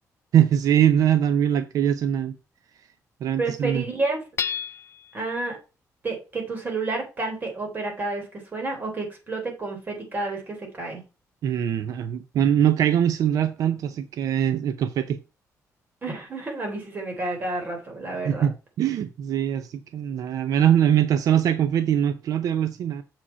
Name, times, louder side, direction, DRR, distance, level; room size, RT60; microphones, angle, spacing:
voice 1, 0.3-2.4 3.2-3.8 11.4-15.2 18.2-23.0, right 9 dB, 70° right, 0.6 m, -22 dB
voice 2, 3.4-4.2 5.1-5.6 6.0-8.2 8.5-11.0 16.0-18.5, right 3 dB, 30° right, 3.2 m, -30 dB
Hammer / Chink clink, 4.4-5.2, left 8 dB, 45° left, 0.4 m, -30 dB
7.2 x 5.0 x 5.5 m
cardioid pair, 150°, 6 cm